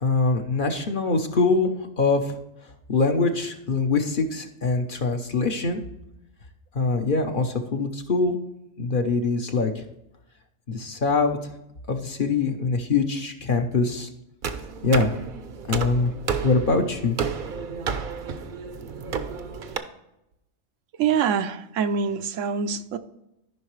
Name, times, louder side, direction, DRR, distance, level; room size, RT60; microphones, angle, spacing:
voice 1, 0.0-1.7 2.0-2.4 2.9-5.8 6.7-8.4 8.8-9.8 10.7-11.4 11.9-14.1 14.8-15.1 15.7-16.1 16.4-17.2, left 3 dB, 45° left, 5 dB, 0.9 m, -23 dB
sound 1, 14.4-19.8, right 6 dB, 50° right, 0.7 m, -31 dB
voice 2, 21.0-23.0, right 6 dB, 80° right, 10 dB, 1.0 m, -25 dB
13.5 x 5.6 x 3.2 m, 0.87 s
omnidirectional pair, 1.3 m